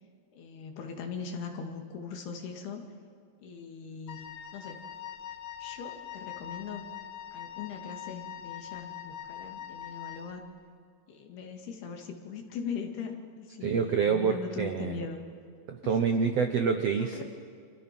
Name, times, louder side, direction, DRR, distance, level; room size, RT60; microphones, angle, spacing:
voice 1, 0.3-2.8 3.4-4.3 4.5-4.8 5.6-6.9 7.3-10.4 11.1-15.2 17.0-17.2, left 5 dB, 90° left, 3 dB, 4.3 m, -40 dB
Wind instrument woodwind instrument, 4.1-10.4, left 10 dB, 65° left, 1.8 m, -43 dB
voice 2, 13.6-15.0 15.7-17.2, right 6 dB, 80° right, 6 dB, 1.4 m, -27 dB
30.0 x 27.5 x 6.1 m, 2.1 s
omnidirectional pair, 4.4 m